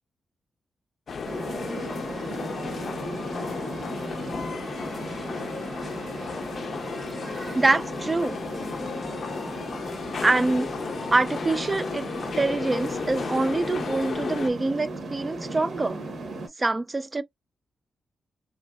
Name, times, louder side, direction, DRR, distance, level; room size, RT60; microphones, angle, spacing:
sound 1, 1.1-14.5, left 5 dB, 60° left, 0.4 m, -34 dB
sound 2, 1.2-16.5, right 2 dB, 70° right, 0.9 m, -37 dB
voice 1, 7.0-8.4 10.2-10.7 11.1-12.1 12.4-16.0 16.6-17.2, right 2 dB, 30° right, 0.4 m, -25 dB
3.1 x 2.6 x 2.3 m
cardioid pair, 60°, 0 cm